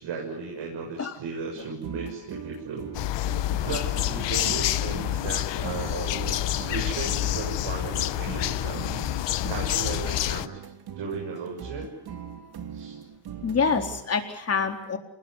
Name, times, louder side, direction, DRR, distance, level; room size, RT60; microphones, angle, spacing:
voice 1, 0.0-2.9 3.6-8.9 9.5-10.6 11.0-11.9 12.7-12.9, right 4 dB, 75° right, 0 dB, 7.2 m, -36 dB
sound 1, 1.5-14.0, right 7 dB, 60° right, 2.7 m, -41 dB
sound 2, 2.9-10.5, left 14 dB, 75° left, 1.1 m, -28 dB
voice 2, 13.4-15.0, left 5 dB, 35° left, 4 dB, 4.0 m, -26 dB
27.5 x 21.0 x 10.0 m, 0.78 s
cardioid pair, 135°, 43 cm